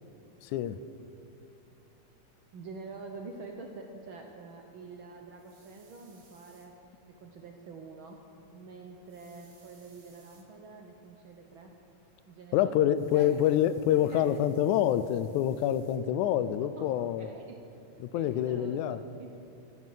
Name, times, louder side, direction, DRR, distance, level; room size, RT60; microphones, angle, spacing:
voice 1, 0.4-0.8 12.5-17.3 18.0-19.0, left 11 dB, 85° left, 2.0 m, -27 dB
voice 2, 2.5-8.2 8.5-11.8 12.3-12.7 13.1-13.4 14.0-14.4 16.8-16.9 17.2-17.6 18.0-19.4, right 4 dB, 70° right, 1.2 m, -46 dB
sound 1, 5.3-6.7 9.0-10.5 12.9-16.0, right 4 dB, 55° right, 2.9 m, -64 dB
15.5 x 13.5 x 5.7 m
omnidirectional pair, 3.4 m